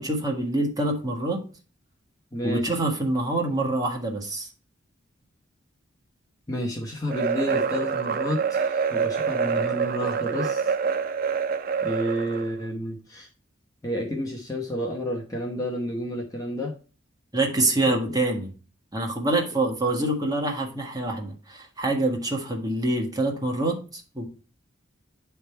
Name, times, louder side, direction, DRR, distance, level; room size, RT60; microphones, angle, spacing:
voice 1, 0.0-1.4 2.4-4.5 17.3-18.5 18.9-24.3, right 2 dB, 20° right, 0 dB, 1.5 m, -26 dB
voice 2, 2.3-2.7 6.5-10.7 11.8-13.3 13.8-16.7 17.9-18.0, equal, 20° left, -1 dB, 0.9 m, -30 dB
sound 1, 7.1-12.5, right 6 dB, 45° right, 0.4 m, -26 dB
9.9 x 3.5 x 4.4 m, 0.36 s
head